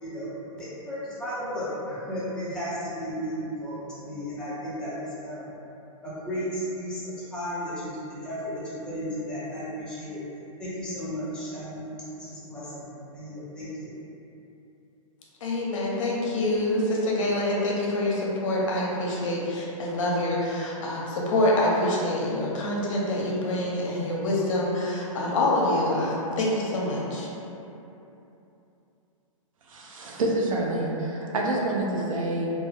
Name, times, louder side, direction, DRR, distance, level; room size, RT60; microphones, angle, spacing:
voice 1, 0.0-5.5 6.0-10.2 10.6-11.8 12.1-12.9 13.1-13.9, equal, 5° left, -11 dB, 0.5 m, -34 dB
voice 2, 15.4-27.3, left 1 dB, 65° left, -3 dB, 0.7 m, -26 dB
voice 3, 29.7-32.5, right 2 dB, 70° right, -2 dB, 0.5 m, -27 dB
2.2 x 2.0 x 3.2 m, 2.9 s
hypercardioid pair, 150°, 18 cm